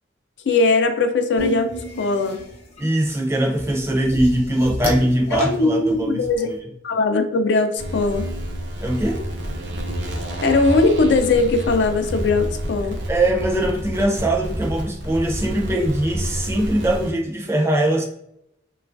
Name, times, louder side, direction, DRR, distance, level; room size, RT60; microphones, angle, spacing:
voice 1, 0.5-1.7 2.0-2.4 5.3-6.6 6.8-8.2 10.4-13.0, left 3 dB, 75° left, 7 dB, 0.4 m, -19 dB
sound 1, 1.4-6.4, equal, 35° left, 0.6 m, -31 dB
voice 2, 2.8-6.6 8.8-9.2 13.1-18.0, right 1 dB, 15° right, 1 dB, 0.4 m, -21 dB
sound 2, 7.8-17.1, equal, 70° right, 0.5 m, -29 dB
3.1 x 2.3 x 2.5 m, 0.77 s
head